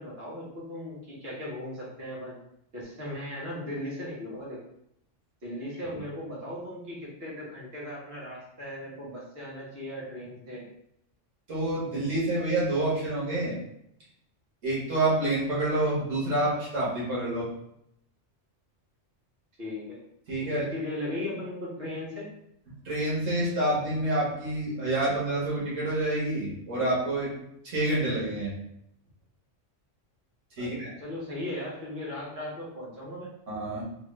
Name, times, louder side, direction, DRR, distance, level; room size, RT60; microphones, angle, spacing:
voice 1, 0.0-2.4 2.7-4.6 5.4-10.6 19.6-20.0 20.5-22.3 30.6-33.3, left 1 dB, 55° right, -7 dB, 1.4 m, -37 dB
voice 2, 11.5-13.5 14.6-17.5 20.3-20.7 22.8-27.3 27.6-28.5 30.6-30.9 33.5-33.8, right 1 dB, 85° right, -7 dB, 1.7 m, -28 dB
3.6 x 2.4 x 3.2 m, 0.77 s
omnidirectional pair, 1.3 m